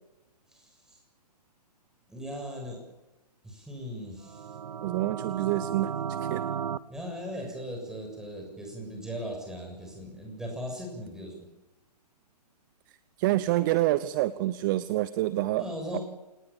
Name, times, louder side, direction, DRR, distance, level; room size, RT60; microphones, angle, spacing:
voice 1, 0.5-1.0 2.1-2.8 3.4-4.5 6.9-11.5 15.6-16.0, equal, 5° right, 1 dB, 7.1 m, -38 dB
sound 1, 4.2-6.8, right 8 dB, 65° right, 1.2 m, -34 dB
voice 2, 4.8-5.9 6.2-6.4 13.2-15.6 15.9-16.0, right 16 dB, 30° right, 15 dB, 0.8 m, -27 dB
28.0 x 19.5 x 7.2 m, 1.0 s
hypercardioid pair, 145°, 21 cm